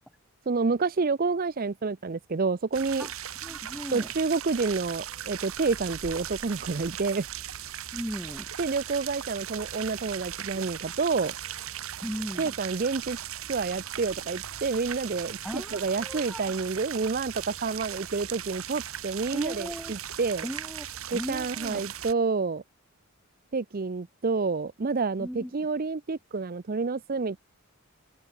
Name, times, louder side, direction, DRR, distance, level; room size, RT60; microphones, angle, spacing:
voice 1, 0.5-3.1 3.9-7.3 8.6-11.3 12.4-13.2 13.5-20.5 21.1-22.6 23.5-27.4, right 4 dB, 40° right, 0.5 m, -29 dB
sound 1, 2.7-22.1, right 10 dB, 70° right, 1.4 m, -38 dB
voice 2, 3.4-4.1 7.9-8.5 12.0-12.5 15.4-16.5 19.3-20.0 20.4-20.9 21.1-21.8 25.2-25.5, equal, 5° right, 7.8 m, -37 dB
open air
head